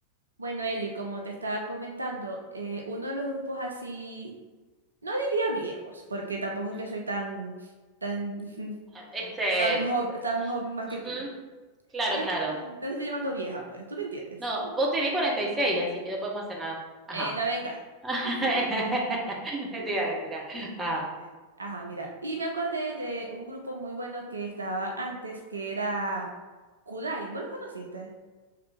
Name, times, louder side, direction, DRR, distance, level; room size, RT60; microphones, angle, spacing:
voice 1, 0.4-4.3 5.0-7.7 8.0-8.8 9.6-11.2 12.1-14.4 14.6-14.7 17.1-17.8 18.4-18.5 19.7-19.9 20.5-20.7 21.6-26.3 26.9-28.1, right 2 dB, 75° right, 1 dB, 0.6 m, -33 dB
voice 2, 9.1-9.8 11.0-11.3 11.9-12.6 14.4-16.8 17.1-17.3 18.0-21.0, right 1 dB, 15° right, -2 dB, 1.1 m, -29 dB
5.6 x 3.6 x 2.4 m, 1.3 s
figure-of-eight pair, 90°, 0 cm